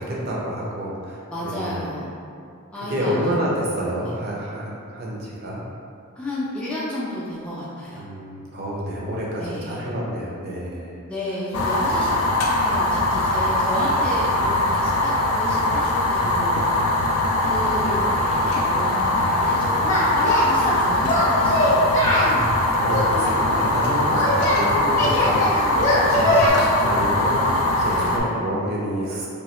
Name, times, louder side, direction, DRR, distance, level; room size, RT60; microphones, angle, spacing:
voice 1, 0.0-2.0 2.9-5.6 8.0-11.0 22.3-29.3, equal, 45° right, -4 dB, 0.5 m, -29 dB
voice 2, 1.3-2.1 2.7-3.2 4.0-4.2 6.2-8.0 9.4-9.9 11.1-16.6 17.4-22.4 27.9-28.4, left 1 dB, 5° left, -9 dB, 0.3 m, -32 dB
Fire, 11.5-28.2, left 1 dB, 75° left, 0.4 m, -21 dB
Singing, 19.8-20.8 21.1-22.3 22.9-24.6 25.0-26.5, left 1 dB, 30° left, 0.7 m, -21 dB
3.0 x 2.3 x 3.0 m, 2.4 s
head